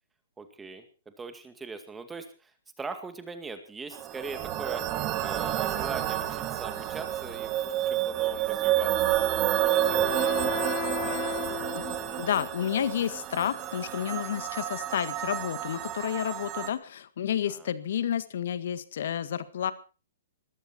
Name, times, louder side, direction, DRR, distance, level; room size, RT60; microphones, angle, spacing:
voice 1, 0.4-2.5 2.8-4.9 5.2-9.2 9.6-10.3 11.0-11.5 14.0-14.1 17.5-17.7, right 4 dB, 10° right, 8 dB, 2.2 m, -41 dB
sound 1, 3.9-16.7, right 12 dB, 30° right, 2.2 m, -29 dB
Wind instrument woodwind instrument, 8.9-12.5, left 19 dB, 40° left, 1.2 m, -36 dB
voice 2, 10.1-10.5 11.7-19.7, left 9 dB, 65° left, 13 dB, 1.8 m, -31 dB
20.5 x 14.0 x 4.4 m, 0.35 s
hypercardioid pair, 140°, 0 cm